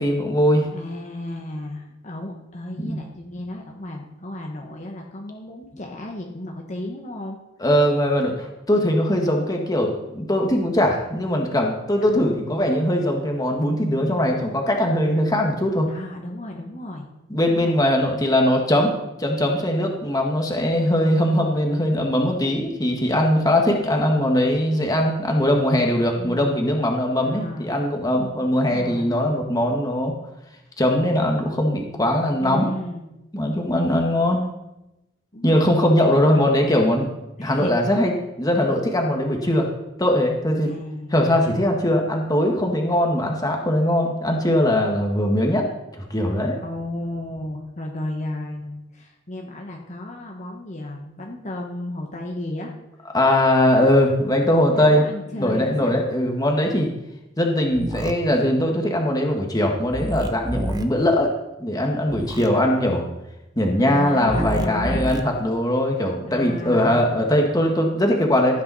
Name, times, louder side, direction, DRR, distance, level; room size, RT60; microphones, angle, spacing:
voice 1, 0.0-0.7 2.8-3.0 7.6-15.9 17.3-30.1 30.8-32.7 33.3-34.4 35.4-37.1 37.4-38.1 38.4-39.7 40.0-40.7 41.1-46.6 53.1-55.0 55.4-56.9 57.4-63.1 63.6-68.6, left 1 dB, 20° left, 2 dB, 1.8 m, -21 dB
voice 2, 0.7-7.4 12.0-12.4 15.9-17.1 17.5-17.8 26.2-26.6 27.2-27.7 28.5-29.2 32.4-33.1 33.6-34.0 35.3-36.8 37.4-38.0 40.6-41.5 46.6-52.7 54.7-56.0 63.8-65.1 66.3-67.1, left 1 dB, 40° left, 0 dB, 1.4 m, -34 dB
sound 1, 57.7-58.1 59.9-60.8 62.1-62.5 64.3-65.2, right 1 dB, 20° right, 0.9 m, -27 dB
15.5 x 9.3 x 4.2 m, 0.94 s
head